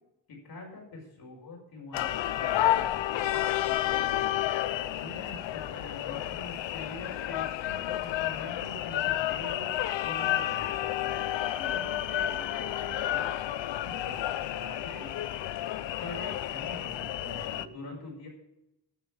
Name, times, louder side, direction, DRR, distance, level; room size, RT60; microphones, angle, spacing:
voice 1, 0.3-4.4 4.9-9.7 10.0-10.9 11.5-13.3 13.8-14.2 14.5-15.3 16.0-18.3, left 2 dB, 55° left, -1 dB, 5.5 m, -44 dB
sound 1, 1.9-17.7, left 13 dB, 85° left, 0.7 m, -31 dB
12.0 x 7.2 x 8.9 m, 0.87 s
wide cardioid pair, 170°, 43 cm